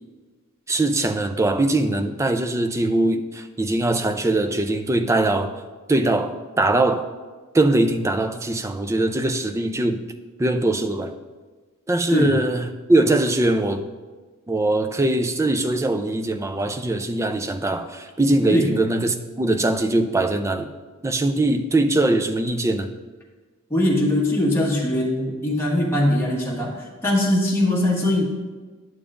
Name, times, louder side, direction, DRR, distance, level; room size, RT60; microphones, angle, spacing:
voice 1, 0.7-5.5 5.9-7.1 7.5-10.0 10.4-11.1 11.9-13.8 14.5-20.7 21.0-22.9, right 2 dB, 15° right, 8 dB, 0.3 m, -21 dB
voice 2, 23.7-28.2, left 1 dB, 10° left, -4 dB, 1.6 m, -21 dB
11.0 x 6.9 x 2.5 m, 1.4 s
head